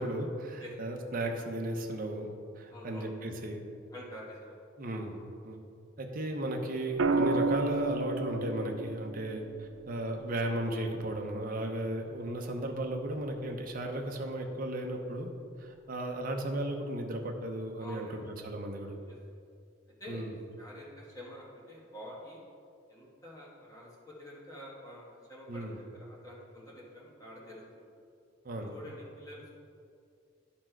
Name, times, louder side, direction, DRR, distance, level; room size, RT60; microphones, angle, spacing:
voice 1, 0.0-3.6 4.8-5.6 6.0-15.3 15.6-19.0 20.1-20.3 25.5-25.7 28.4-28.7, right 1 dB, 45° right, 3 dB, 0.8 m, -35 dB
voice 2, 2.7-3.1 3.9-4.5 17.8-18.2 19.0-19.1 20.0-20.3 20.6-22.4 22.9-27.9 28.7-29.5, left 1 dB, 20° left, -5 dB, 1.4 m, -47 dB
sound 1, 7.0-11.1 12.8-13.2, right 3 dB, 65° right, 0.4 m, -32 dB
10.5 x 4.4 x 4.5 m, 2.4 s
head